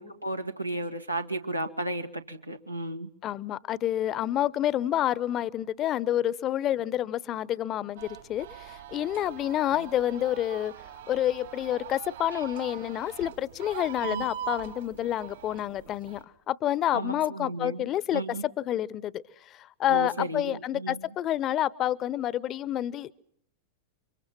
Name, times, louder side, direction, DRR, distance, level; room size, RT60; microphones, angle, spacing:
voice 1, 0.0-3.1 12.3-12.4 14.1-14.2 16.9-18.5 19.9-21.0, right 1 dB, 85° right, 6 dB, 1.8 m, -34 dB
voice 2, 3.2-10.7 11.1-19.2 19.5-23.1, left 12 dB, 30° left, 21 dB, 0.9 m, -29 dB
sound 1, 8.0-16.2, right 10 dB, 60° right, 3.5 m, -42 dB
29.5 x 24.5 x 6.0 m, 0.70 s
figure-of-eight pair, 90°, 0 cm